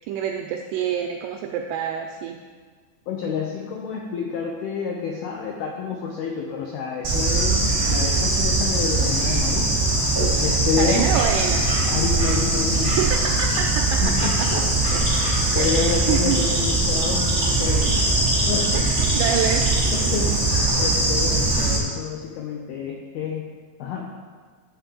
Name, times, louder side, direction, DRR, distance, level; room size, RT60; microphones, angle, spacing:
voice 1, 0.1-2.4 10.8-11.7 12.9-14.6 14.9-15.1 15.6-16.5 17.9-18.0 18.7-19.8, right 8 dB, 85° right, 3 dB, 2.4 m, -27 dB
voice 2, 3.1-9.7 10.4-11.1 11.9-13.0 14.0-14.4 15.5-18.1 18.5-18.9 19.9-23.5 23.8-24.1, left 7 dB, 85° left, 0 dB, 2.1 m, -29 dB
Bird / Insect, 7.0-21.8, right 2 dB, 65° right, 0.8 m, -21 dB
11.0 x 3.8 x 7.3 m, 1.5 s
omnidirectional pair, 5.3 m